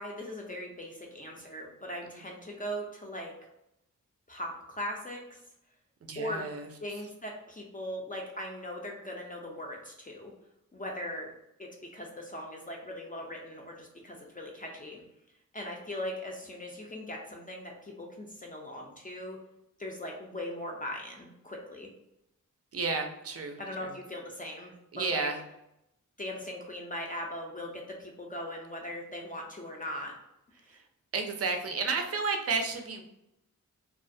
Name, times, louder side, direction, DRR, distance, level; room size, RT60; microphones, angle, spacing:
voice 1, 0.0-3.5 4.3-5.4 6.2-6.5 6.8-10.3 10.7-11.3 11.6-15.0 15.5-19.4 19.8-21.9 23.6-25.3 26.2-30.1, left 1 dB, 25° left, 0 dB, 0.4 m, -39 dB
voice 2, 6.0-6.7 22.7-24.0 24.9-25.4 30.7-30.8 31.1-33.0, right 4 dB, 50° right, 5 dB, 0.4 m, -32 dB
2.3 x 2.1 x 2.5 m, 0.84 s
wide cardioid pair, 75°, 32 cm